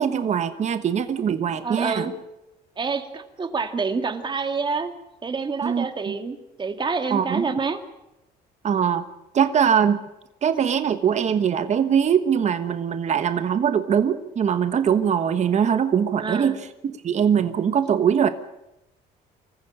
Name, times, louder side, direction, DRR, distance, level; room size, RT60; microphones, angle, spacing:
voice 1, 0.0-2.1 5.6-5.9 7.1-7.5 8.6-9.1 9.3-10.0 10.4-18.3, right 8 dB, 40° right, 10 dB, 1.3 m, -22 dB
voice 2, 1.6-2.1 2.8-4.9 5.2-7.8 16.2-16.6, right 4 dB, 25° right, 7 dB, 2.3 m, -27 dB
25.5 x 15.0 x 8.8 m, 0.93 s
cardioid pair, 110°, 17 cm